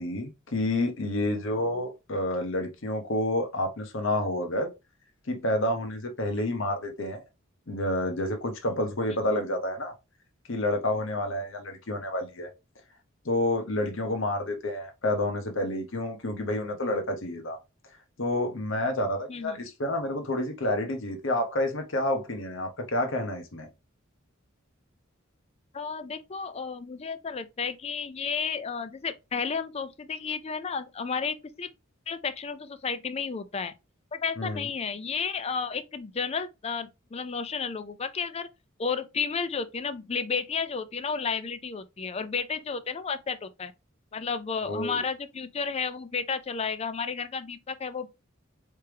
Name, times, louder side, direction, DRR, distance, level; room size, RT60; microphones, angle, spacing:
voice 1, 0.0-4.7 5.3-7.2 7.7-9.9 10.5-12.5 13.2-17.6 18.2-23.7 34.4-34.7 44.6-45.0, left 1 dB, 70° left, 1.0 m, -29 dB
voice 2, 25.7-31.7 32.1-33.7 34.1-38.5 38.8-43.7 44.1-48.1, left 5 dB, 30° left, 0.4 m, -32 dB
4.4 x 3.3 x 3.4 m
head